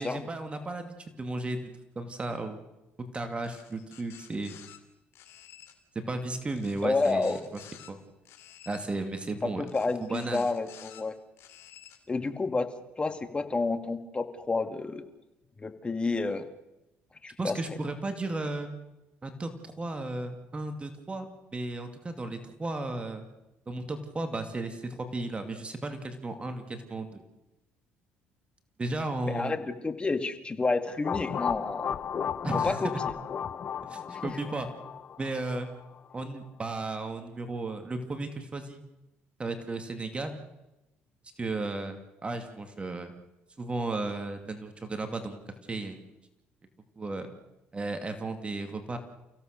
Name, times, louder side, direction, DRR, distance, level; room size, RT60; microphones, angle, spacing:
voice 1, 0.0-1.7 2.0-2.6 3.1-4.6 6.1-7.4 7.9-8.0 8.7-9.7 10.0-10.5 17.4-18.7 19.2-23.3 23.7-27.2 28.8-29.6 32.4-32.8 33.8-34.7 35.2-35.7 36.1-38.8 39.4-40.4 41.4-42.0 42.2-43.1 43.6-45.4 45.7-46.0 47.0-47.3 47.7-49.0, right 2 dB, 25° right, 7 dB, 2.5 m, -34 dB
sound 1, 3.4-4.8 5.1-5.7 6.6-7.9 8.2-8.9 9.7-11.0 11.4-12.0, left 11 dB, 70° left, 3.1 m, -51 dB
voice 2, 6.8-7.5 9.4-11.2 12.1-12.7 13.0-15.0 15.6-16.5 17.2-17.6 29.3-31.9 32.5-32.9 34.1-34.4, left 3 dB, 20° left, 8 dB, 2.2 m, -30 dB
sound 2, 31.0-35.8, left 8 dB, 45° left, 1.1 m, -34 dB
29.5 x 16.5 x 6.7 m, 0.96 s
cardioid pair, 90°, 5 cm